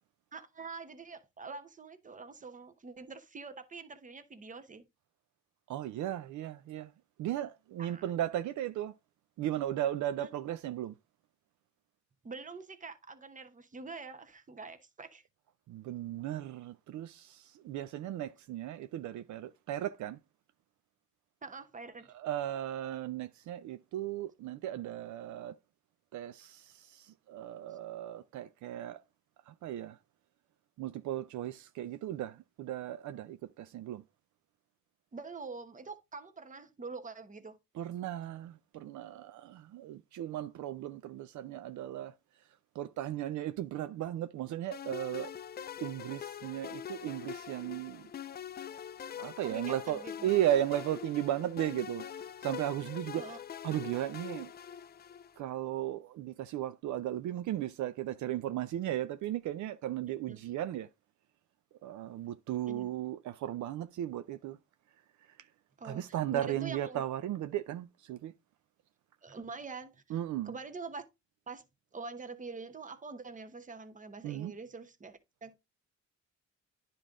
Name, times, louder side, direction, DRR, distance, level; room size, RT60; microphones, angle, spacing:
voice 1, 0.3-4.8 7.8-8.1 10.2-10.3 12.2-15.2 21.4-22.1 27.7-27.8 35.1-37.6 49.4-50.3 53.1-53.4 60.3-60.4 62.7-62.9 65.8-67.0 69.2-70.0 70.4-71.0 71.5-71.6 71.9-75.6, right 4 dB, 25° right, 1.0 m, -45 dB
voice 2, 5.7-6.9 7.2-8.9 9.4-10.9 15.7-20.2 22.1-25.6 26.1-29.0 29.5-30.0 30.8-34.0 37.7-42.1 42.7-45.3 45.8-48.1 49.2-52.0 52.4-53.4 53.6-54.5 55.4-60.9 61.8-64.6 65.8-68.3 70.1-70.6 74.2-74.5, right 12 dB, 75° right, 0.5 m, -36 dB
sound 1, 44.7-55.4, left 9 dB, 35° left, 0.4 m, -44 dB
9.9 x 3.9 x 3.6 m
cardioid pair, 90°, 30 cm